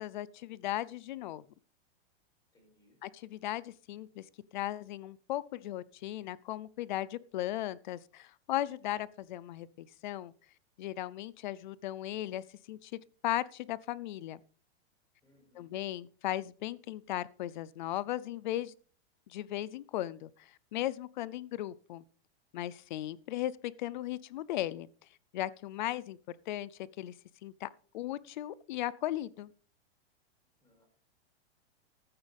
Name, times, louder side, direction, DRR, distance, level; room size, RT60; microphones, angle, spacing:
voice 1, 0.0-1.4 3.0-4.3 4.5-10.3 10.8-14.4 15.6-18.7 19.3-22.0 22.5-24.9 25.3-27.1 27.4-27.7 27.9-29.5, left 14 dB, 45° left, 0.6 m, -37 dB
voice 2, 2.5-3.0 15.2-15.7 30.6-30.9, left 1 dB, 10° left, 5.6 m, -66 dB
14.5 x 13.0 x 3.5 m
supercardioid pair, 170°, 32 cm